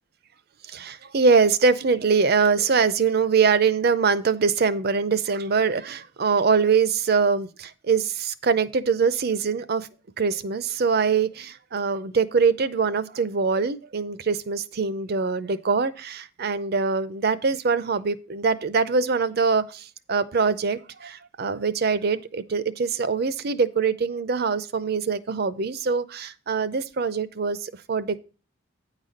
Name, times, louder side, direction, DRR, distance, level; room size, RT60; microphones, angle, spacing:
voice 1, 0.7-9.9 10.2-28.2, right 5 dB, 50° right, 0.6 m, -23 dB
9.4 x 4.1 x 6.4 m
head